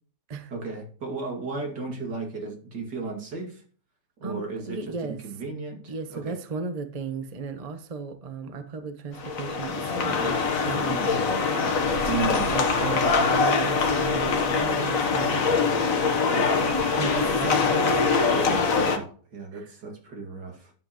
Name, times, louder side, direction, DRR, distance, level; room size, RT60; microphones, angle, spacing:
voice 1, 0.5-3.6 4.2-5.0 5.2-6.4 12.1-12.5 16.3-16.8 18.3-20.7, right 4 dB, 75° right, 1 dB, 2.9 m, -34 dB
voice 2, 4.2-5.2 5.9-11.4 12.2-15.9 17.0-18.6 19.5-19.7, right 5 dB, 30° right, 8 dB, 0.8 m, -35 dB
sound 1, 9.1-19.0, left 4 dB, 55° left, 1.5 m, -23 dB
11.0 x 7.8 x 3.0 m, 0.43 s
omnidirectional pair, 1.9 m